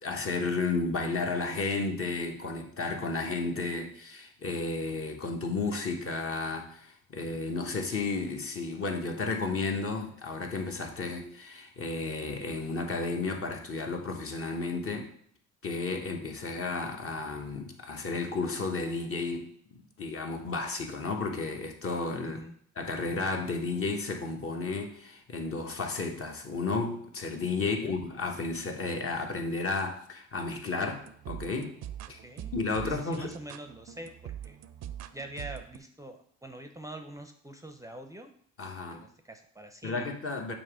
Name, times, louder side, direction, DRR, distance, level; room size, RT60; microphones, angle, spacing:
voice 1, 0.0-15.1 15.6-22.4 22.8-31.7 32.1-32.2 32.5-33.3 38.6-39.1 39.8-40.5, left 3 dB, 50° left, 3 dB, 1.2 m, -33 dB
voice 2, 27.6-28.0 32.2-32.5 32.8-34.6 35.1-38.3 38.9-40.1, right 1 dB, 10° right, 5 dB, 0.5 m, -45 dB
sound 1, 30.8-35.8, right 10 dB, 60° right, 0.5 m, -43 dB
7.0 x 3.0 x 4.9 m, 0.62 s
cardioid pair, 90°, 30 cm